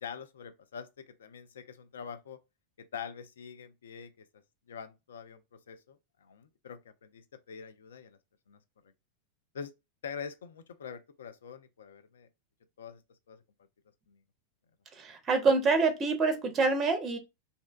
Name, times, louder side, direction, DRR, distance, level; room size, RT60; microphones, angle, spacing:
voice 1, 0.0-2.4 2.9-4.1 4.7-5.4 5.7-8.2 8.5-8.6 9.5-9.7 10.0-12.3 12.8-13.0 13.3-13.4 14.1-14.2, left 7 dB, 65° left, 0.3 m, -44 dB
voice 2, 14.9-17.2, right 4 dB, 25° right, 0.5 m, -26 dB
2.6 x 2.1 x 2.2 m
figure-of-eight pair, 90°, 0 cm